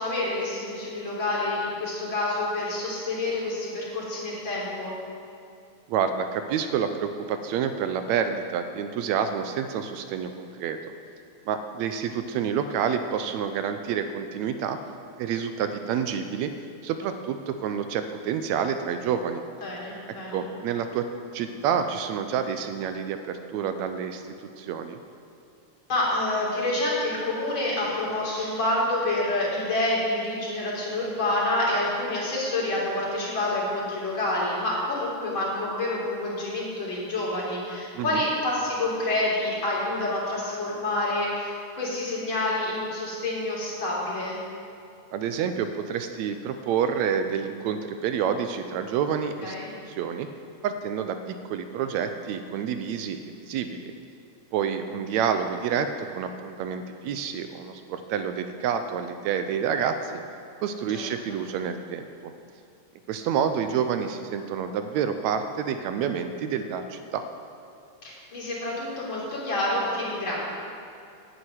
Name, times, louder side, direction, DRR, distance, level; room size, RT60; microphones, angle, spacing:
voice 1, 0.0-5.0 19.6-20.4 25.9-44.4 49.4-49.6 60.9-61.4 68.0-70.4, left 2 dB, 40° left, -5 dB, 3.9 m, -28 dB
voice 2, 5.9-10.8 11.5-14.8 15.2-16.5 16.8-19.4 20.3-21.1 21.3-25.0 38.0-38.2 45.1-49.6 49.9-50.3 50.6-53.9 54.5-60.2 60.6-62.1 63.1-67.2, right 7 dB, 80° right, 8 dB, 1.8 m, -28 dB
9.5 x 9.1 x 9.3 m, 2.6 s
omnidirectional pair, 3.5 m